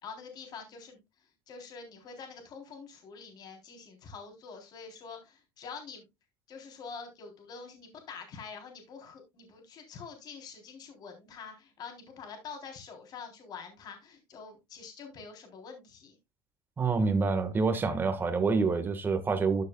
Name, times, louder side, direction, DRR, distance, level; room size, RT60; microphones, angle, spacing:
voice 1, 0.0-1.0 1.5-6.0 6.5-16.2, left 5 dB, 45° left, 3.7 m, -46 dB
voice 2, 16.8-19.6, right 4 dB, 20° right, 1.6 m, -27 dB
13.5 x 6.5 x 2.3 m
cardioid pair, 145°, 10 cm